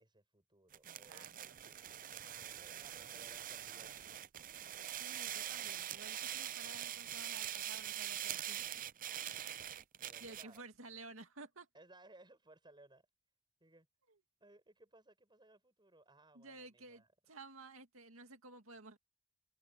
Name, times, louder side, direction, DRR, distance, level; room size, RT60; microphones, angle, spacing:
voice 1, 0.0-4.3 10.0-10.6 11.7-13.1 13.6-13.9 14.4-17.1, right 2 dB, 20° right, 7.6 m, -63 dB
sound 1, 0.7-10.6, right 11 dB, 40° right, 0.5 m, -44 dB
voice 2, 0.8-1.3 4.9-8.7 10.2-11.7 16.3-19.0, right 3 dB, 80° right, 2.3 m, -54 dB
head